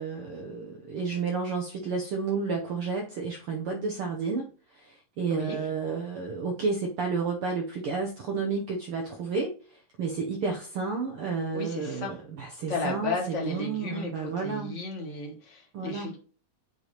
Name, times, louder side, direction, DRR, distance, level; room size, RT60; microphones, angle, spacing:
voice 1, 0.0-4.5 4.7-14.8 15.7-16.1, right 4 dB, 85° right, 1.2 m, -31 dB
voice 2, 11.5-12.2 12.7-16.2, left 3 dB, 80° left, 0.6 m, -34 dB
7.7 x 3.4 x 3.9 m
omnidirectional pair, 3.6 m